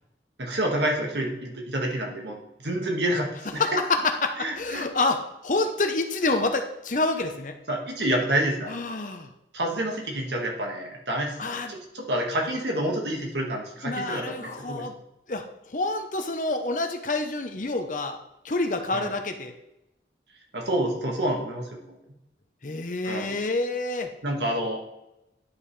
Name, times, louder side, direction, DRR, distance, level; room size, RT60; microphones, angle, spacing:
voice 1, 0.4-3.7 4.4-4.9 7.7-8.8 9.5-14.9 18.9-19.1 20.5-22.0 23.0-23.3 24.2-24.8, right 1 dB, 80° right, 1 dB, 1.8 m, -28 dB
voice 2, 3.6-7.6 8.7-9.3 11.4-11.7 13.8-14.9 15.3-18.2 18.4-19.5 22.6-24.1, left 3 dB, 45° left, 6 dB, 0.9 m, -28 dB
11.0 x 5.5 x 3.3 m, 0.87 s
head